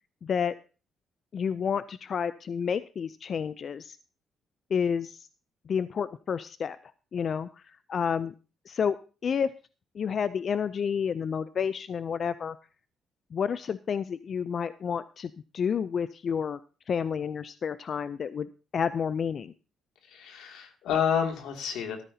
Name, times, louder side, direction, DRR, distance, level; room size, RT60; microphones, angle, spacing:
voice 1, 0.2-0.5 1.3-4.0 4.7-5.3 5.7-6.8 7.1-8.3 8.7-9.5 9.9-12.6 13.3-16.6 16.9-19.5, left 7 dB, 50° left, 14 dB, 0.4 m, -30 dB
voice 2, 20.1-22.0, left 7 dB, 85° left, 3 dB, 2.4 m, -29 dB
14.0 x 13.0 x 2.8 m, 0.35 s
cardioid pair, 90°, 0 cm